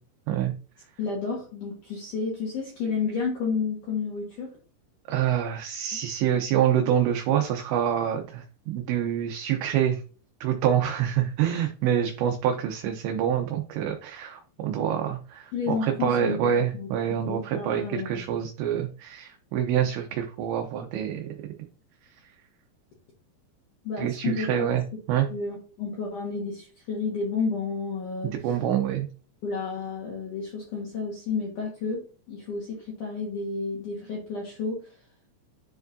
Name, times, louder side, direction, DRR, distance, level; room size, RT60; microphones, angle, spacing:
voice 1, 1.0-4.6 15.5-18.4 23.8-24.7 25.3-28.5 29.4-35.0, left 4 dB, 60° left, -2 dB, 2.2 m, -31 dB
voice 2, 5.1-10.0 10.4-21.3 24.0-24.8 25.1-25.3 28.4-29.1, right 9 dB, 80° right, 4 dB, 2.8 m, -26 dB
10.5 x 4.8 x 2.6 m, 0.37 s
omnidirectional pair, 5.5 m